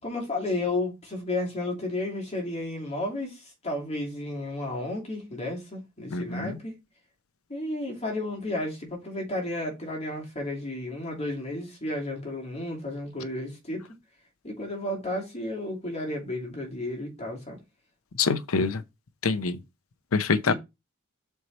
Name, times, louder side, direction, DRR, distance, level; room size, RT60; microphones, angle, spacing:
voice 1, 0.0-6.7 7.5-13.8 14.4-17.6 20.5-20.6, left 1 dB, 30° left, 2.7 m, -32 dB
voice 2, 6.1-6.6 18.2-18.8 19.2-19.6 20.1-20.5, left 4 dB, 85° left, 0.7 m, -25 dB
6.6 x 4.5 x 4.1 m
head